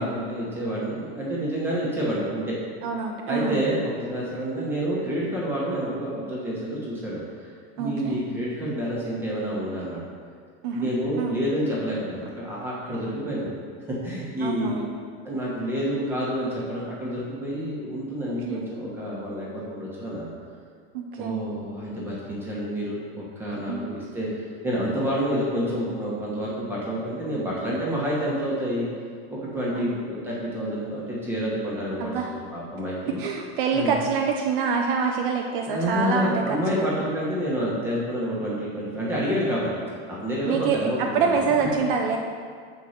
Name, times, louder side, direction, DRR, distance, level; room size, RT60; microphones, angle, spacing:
voice 1, 0.0-2.6 3.3-10.1 10.7-13.6 13.9-14.8 15.2-20.3 21.1-28.9 29.3-32.1 32.5-33.2 33.7-34.0 35.6-39.7 40.1-41.5, equal, 5° right, -6 dB, 1.1 m, -28 dB
voice 2, 2.8-3.7 7.8-8.2 10.6-10.9 11.2-11.4 14.4-14.9 18.5-18.6 20.9-21.4 23.7-23.8 29.7-30.0 32.0-32.3 33.2-36.9 40.4-42.2, right 5 dB, 55° right, 2 dB, 0.6 m, -26 dB
5.7 x 4.6 x 6.4 m, 2.1 s
supercardioid pair, 180°, 31 cm